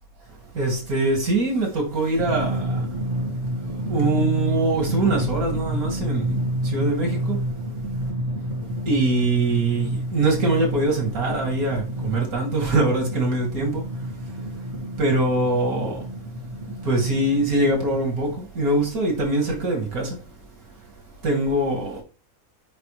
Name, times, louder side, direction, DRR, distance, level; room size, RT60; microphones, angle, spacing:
voice 1, 0.5-2.9 3.7-7.4 8.9-14.1 15.0-16.0 16.8-20.2 21.2-22.0, right 2 dB, 90° right, 2.6 m, -23 dB
Drum, 2.2-18.4, right 1 dB, 60° right, 1.5 m, -29 dB
5.9 x 5.5 x 3.2 m
omnidirectional pair, 1.5 m